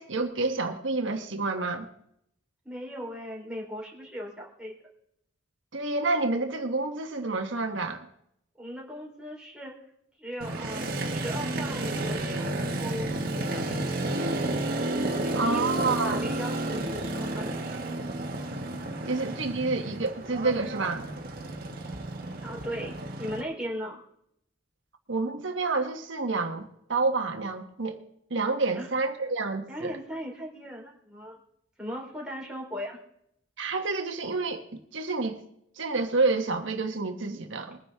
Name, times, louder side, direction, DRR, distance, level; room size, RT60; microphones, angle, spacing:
voice 1, 0.0-1.9 5.7-8.1 15.3-16.2 19.1-21.1 25.1-28.0 28.3-30.0 33.6-35.4 35.8-37.8, right 3 dB, 80° right, 4 dB, 1.2 m, -29 dB
voice 2, 2.7-4.8 8.6-9.8 10.2-12.5 12.8-14.4 15.2-15.7 16.0-17.6 22.4-24.0 28.8-28.9 29.7-31.4 31.8-33.0, equal, 5° right, -4 dB, 3.5 m, -38 dB
Motorcycle, 10.4-23.4, right 2 dB, 50° right, 1.7 m, -31 dB
21.5 x 10.0 x 3.5 m, 0.72 s
head